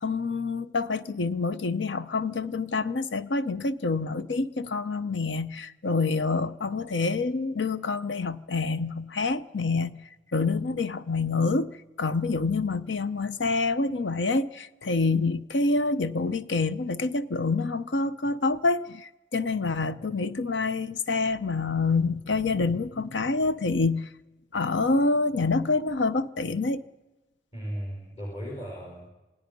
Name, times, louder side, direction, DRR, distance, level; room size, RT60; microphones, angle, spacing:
voice 1, 0.0-10.0 10.3-24.1 24.5-26.8, left 3 dB, 75° left, 0.8 m, -27 dB
voice 2, 27.5-29.1, equal, 35° left, 5.1 m, -36 dB
27.5 x 18.5 x 5.4 m
head